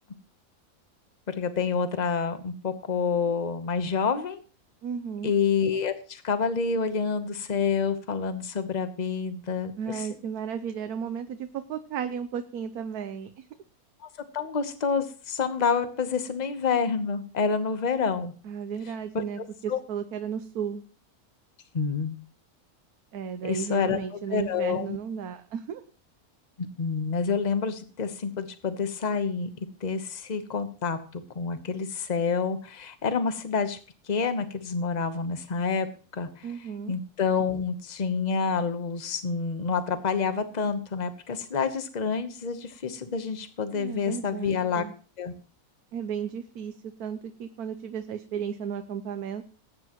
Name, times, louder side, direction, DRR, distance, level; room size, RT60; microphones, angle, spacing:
voice 1, 1.3-4.4 5.2-10.1 14.0-18.3 19.1-19.8 21.7-22.2 23.4-24.0 24.3-25.0 26.6-29.5 29.8-33.8 34.1-35.9 36.1-36.5 36.9-44.8 45.2-45.3, left 5 dB, 30° left, 9 dB, 1.1 m, -28 dB
voice 2, 4.8-5.3 9.8-13.5 18.4-20.8 23.1-25.8 36.4-36.9 43.7-44.9 45.9-49.4, right 7 dB, 80° right, 9 dB, 1.3 m, -34 dB
20.0 x 9.5 x 3.1 m, 0.38 s
omnidirectional pair, 1.6 m